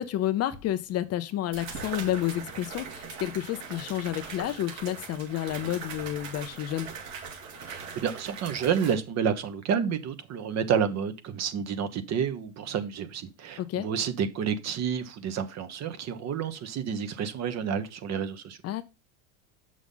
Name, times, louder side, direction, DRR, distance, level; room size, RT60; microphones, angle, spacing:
voice 1, 0.0-6.9 13.6-13.9 18.6-18.8, left 12 dB, 35° left, 0.7 m, -30 dB
sound 1, 0.5-0.6 1.5-8.9, right 5 dB, 60° right, 2.8 m, -40 dB
voice 2, 7.6-18.6, right 7 dB, 40° right, 1.3 m, -30 dB
7.1 x 6.2 x 3.9 m
supercardioid pair, 115°, 42 cm